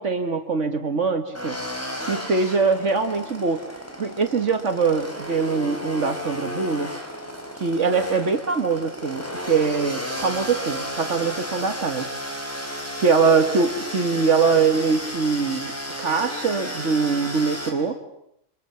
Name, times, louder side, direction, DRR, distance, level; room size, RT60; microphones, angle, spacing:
voice 1, 0.0-1.6 2.0-3.6 4.0-6.9 7.5-12.1 13.0-15.7 16.0-18.0, right 5 dB, 70° right, 7 dB, 2.0 m, -22 dB
sound 1, 1.3-17.7, equal, 10° left, 4.4 m, -33 dB
28.0 x 26.0 x 7.0 m, 0.76 s
omnidirectional pair, 1.3 m